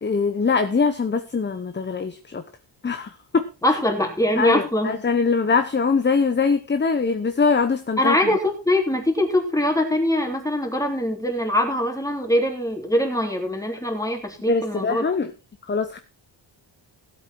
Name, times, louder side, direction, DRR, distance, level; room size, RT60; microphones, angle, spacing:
voice 1, 0.0-2.4 2.8-3.8 4.4-8.4 14.5-15.3 15.7-16.0, left 4 dB, 25° left, 9 dB, 0.9 m, -22 dB
voice 2, 3.6-4.9 8.0-15.0, left 1 dB, 5° left, 3 dB, 3.4 m, -22 dB
16.5 x 8.4 x 4.6 m, 0.30 s
wide cardioid pair, 140°, 45 cm